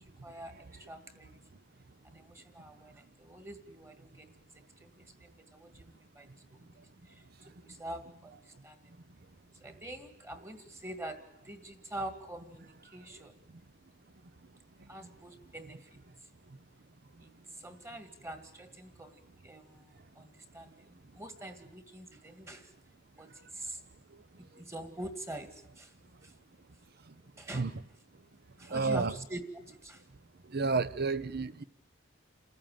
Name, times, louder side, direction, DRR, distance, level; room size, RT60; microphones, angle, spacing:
voice 1, 0.0-1.4 2.0-4.9 5.2-7.2 7.6-8.8 9.6-13.4 14.9-15.9 17.2-22.7 23.2-23.8 24.6-25.9 26.2-26.3 27.4-27.7 28.6-30.0, right 1 dB, 15° right, 1.9 m, -45 dB
voice 2, 28.7-29.1 30.5-31.6, right 4 dB, 55° right, 0.8 m, -30 dB
28.5 x 14.5 x 9.1 m
head